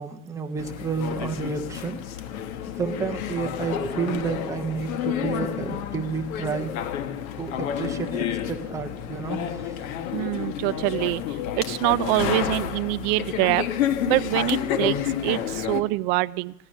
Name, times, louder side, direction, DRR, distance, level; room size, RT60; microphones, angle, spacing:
voice 1, 0.0-2.0 2.8-6.7 7.4-9.8, right 5 dB, 10° right, 4 dB, 0.8 m, -30 dB
sound 1, 0.6-15.8, left 9 dB, 85° left, 1.3 m, -30 dB
voice 2, 10.1-13.7 14.1-15.0 15.2-16.5, right 21 dB, 50° right, 17 dB, 0.5 m, -25 dB
16.5 x 10.5 x 6.3 m, 0.87 s
supercardioid pair, 140°, 41 cm